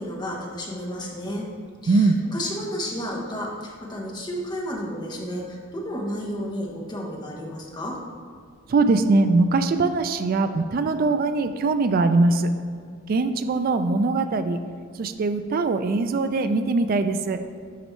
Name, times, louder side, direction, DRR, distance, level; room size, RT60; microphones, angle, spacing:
voice 1, 0.0-1.5 1.8-8.0, equal, 20° left, -2 dB, 0.9 m, -32 dB
voice 2, 1.9-2.2 8.7-12.5 13.1-14.6 15.0-17.4, right 3 dB, 45° right, 9 dB, 0.3 m, -21 dB
6.5 x 5.2 x 3.1 m, 2.1 s
head